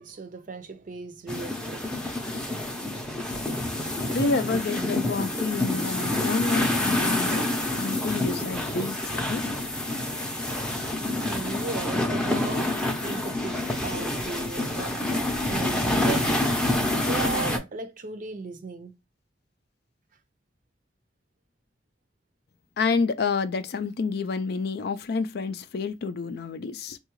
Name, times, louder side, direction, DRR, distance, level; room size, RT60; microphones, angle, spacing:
voice 1, 0.0-2.0 4.1-4.3 11.0-16.5 17.0-19.0, right 4 dB, 50° right, 0.5 m, -37 dB
sound 1, 1.3-17.6, left 1 dB, 5° left, 0.6 m, -27 dB
voice 2, 3.7-9.5 22.8-27.0, left 4 dB, 60° left, 0.4 m, -29 dB
3.6 x 2.3 x 3.0 m
head